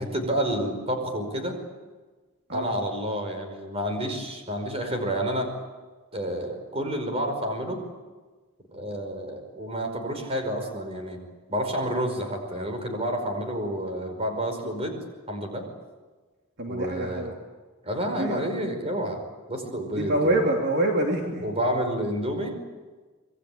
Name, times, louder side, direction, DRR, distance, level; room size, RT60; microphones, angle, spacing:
voice 1, 0.0-1.6 2.5-5.5 6.1-7.8 8.7-11.2 11.5-15.0 15.3-15.7 16.7-17.3 17.8-19.2 19.5-20.4 21.4-22.6, equal, 25° right, 5 dB, 5.1 m, -29 dB
voice 2, 16.6-17.3 18.1-18.4 19.9-21.4, right 1 dB, 50° right, 0 dB, 3.0 m, -25 dB
26.5 x 22.0 x 8.7 m, 1.3 s
head